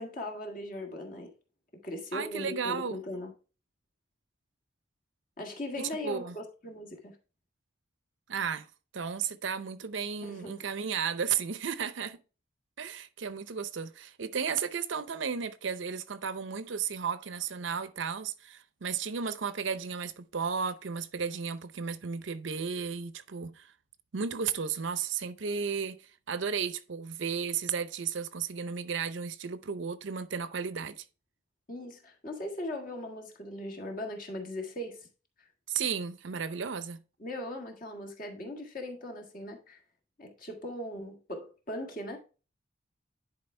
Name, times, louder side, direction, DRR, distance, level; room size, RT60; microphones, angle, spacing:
voice 1, 0.0-1.3 1.8-3.3 5.4-7.2 10.2-10.7 31.7-35.1 35.4-35.5 37.2-39.8 40.2-42.2, left 1 dB, 45° left, 1.7 m, -39 dB
voice 2, 2.1-3.0 5.8-6.4 8.3-8.7 8.9-12.2 12.8-23.7 24.1-26.0 26.3-31.0 35.7-37.0, right 6 dB, 75° right, 0.6 m, -34 dB
10.5 x 4.7 x 3.3 m
head